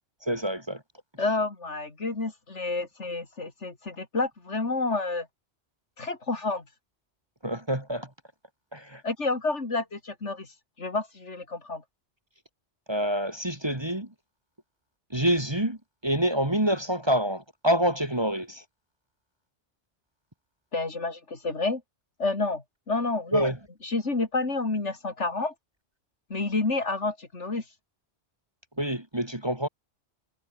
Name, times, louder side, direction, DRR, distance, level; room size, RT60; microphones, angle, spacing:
voice 1, 0.2-0.8 7.4-8.1 8.7-9.0 12.9-14.1 15.1-15.8 16.0-18.6 23.3-23.6 28.8-29.7, equal, 20° right, 2.8 m, -26 dB
voice 2, 1.2-5.3 6.0-6.6 9.0-10.5 10.8-11.8 20.7-21.8 22.2-23.5 23.8-25.5 26.3-27.6, left 3 dB, 75° left, 3.5 m, -29 dB
omnidirectional pair, 1.2 m